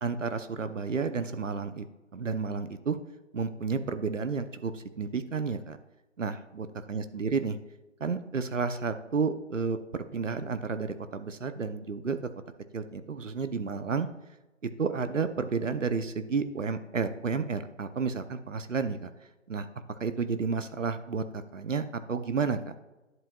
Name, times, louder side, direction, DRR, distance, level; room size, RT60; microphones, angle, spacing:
voice 1, 0.0-1.8 2.1-3.0 3.3-5.8 6.2-7.6 8.0-12.2 12.7-14.1 14.6-19.1 19.5-22.6, right 5 dB, 75° right, 10 dB, 0.8 m, -31 dB
11.0 x 7.8 x 2.3 m, 1.1 s
figure-of-eight pair, 155°, 38 cm